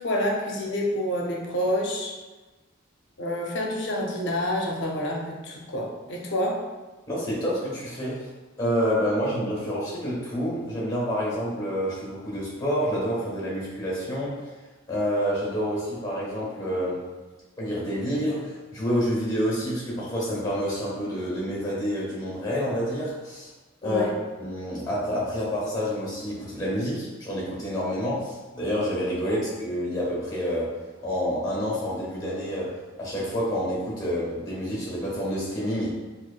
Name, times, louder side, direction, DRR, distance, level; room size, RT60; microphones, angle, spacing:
voice 1, 0.0-2.1 3.2-6.6 23.8-24.1 29.3-29.4, left 1 dB, 60° left, -1 dB, 0.6 m, -28 dB
voice 2, 7.1-8.2 8.6-14.4 14.9-17.0 17.6-23.5 23.8-24.0 24.4-30.7 31.0-32.7 33.0-35.9, equal, 20° left, -5 dB, 1.3 m, -28 dB
4.5 x 2.5 x 2.3 m, 1.2 s
head